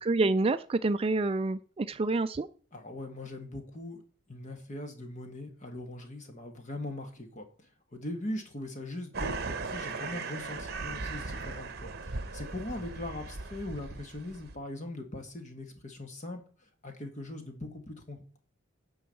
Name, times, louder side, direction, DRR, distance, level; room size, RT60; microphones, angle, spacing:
voice 1, 0.0-2.5, right 3 dB, 25° right, 12 dB, 0.3 m, -28 dB
voice 2, 2.7-4.0 4.3-16.4 16.8-18.4, left 1 dB, 35° left, 5 dB, 1.6 m, -41 dB
sound 1, 9.1-14.5, right 3 dB, 50° right, 1.0 m, -38 dB
9.9 x 4.7 x 7.0 m, 0.42 s
head